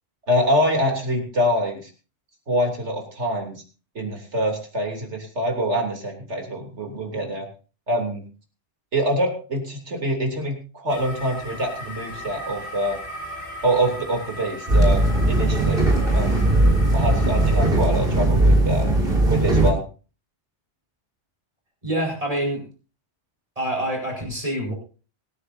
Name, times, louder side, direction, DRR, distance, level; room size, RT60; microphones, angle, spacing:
voice 1, 0.3-1.9 2.5-3.6 3.9-7.5 7.9-8.2 8.9-13.0 13.6-15.8 16.1-16.5 16.9-18.9 19.3-19.8, equal, 70° right, 2 dB, 3.4 m, -25 dB
sound 1, 10.9-17.7, equal, 60° left, 2.2 m, -37 dB
sound 2, 14.7-19.7, right 1 dB, 50° right, 3.9 m, -18 dB
voice 2, 21.8-22.6 23.6-24.7, right 1 dB, 30° right, 1 dB, 5.0 m, -26 dB
25.5 x 9.9 x 2.7 m, 0.36 s
omnidirectional pair, 1.2 m